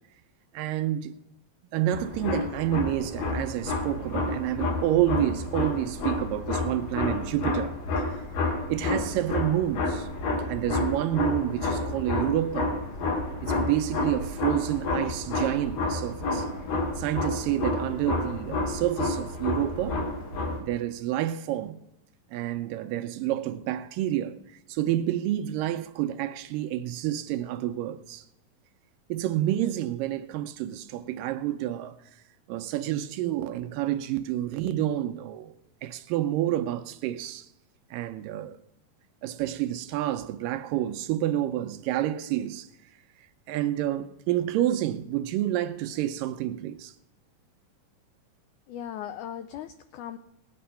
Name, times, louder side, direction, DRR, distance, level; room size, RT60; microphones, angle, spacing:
voice 1, 0.5-1.1 1.7-7.7 8.1-8.2 8.7-10.1 10.5-12.7 13.4-16.5 17.0-20.0 20.6-21.8 22.3-28.3 29.1-31.9 32.5-35.5 35.8-37.5 37.9-38.6 39.2-42.7 43.5-46.9, right 13 dB, 80° right, 2.1 m, -29 dB
sound 1, 1.9-20.6, left 2 dB, 70° left, 3.4 m, -30 dB
voice 2, 48.7-50.2, left 10 dB, 90° left, 1.7 m, -38 dB
18.0 x 8.5 x 5.6 m
omnidirectional pair, 4.2 m